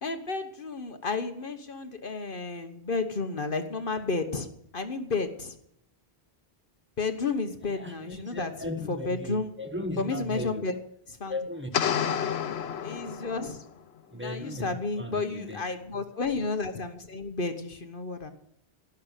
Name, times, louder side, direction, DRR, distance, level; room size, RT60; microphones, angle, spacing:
voice 1, 0.0-4.5 4.7-5.5 7.0-8.5 8.9-9.5 10.0-10.7 11.2-11.3 12.8-13.6 14.2-18.3, left 4 dB, 55° left, 7 dB, 1.3 m, -32 dB
voice 2, 7.6-10.7 11.3-11.7 14.1-14.7 15.0-15.6, left 1 dB, 10° right, 3 dB, 1.4 m, -36 dB
sound 1, 11.7-13.7, left 8 dB, 85° left, 1.0 m, -29 dB
16.5 x 6.5 x 9.1 m, 0.71 s
omnidirectional pair, 1.0 m